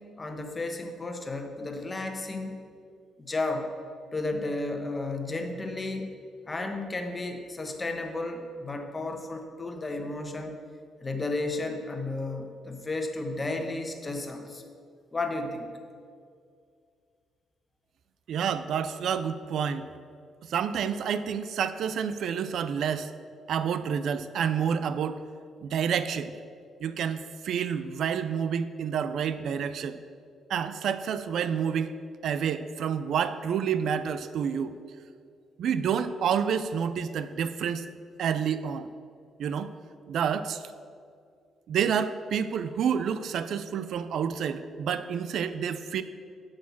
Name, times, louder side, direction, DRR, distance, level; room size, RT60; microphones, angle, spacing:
voice 1, 0.2-2.6 3.2-3.7 4.1-6.1 6.5-10.6 11.0-14.6 15.1-15.7, left 2 dB, 25° left, 5 dB, 1.3 m, -33 dB
voice 2, 18.3-19.9 20.4-23.1 23.5-25.2 25.6-26.4 26.8-30.0 30.5-31.9 32.2-34.8 35.6-37.9 38.2-38.9 39.4-39.7 40.1-40.6 41.7-46.0, right 7 dB, 70° right, 12 dB, 0.4 m, -29 dB
8.3 x 6.5 x 7.1 m, 2.2 s
cardioid pair, 90°, 0 cm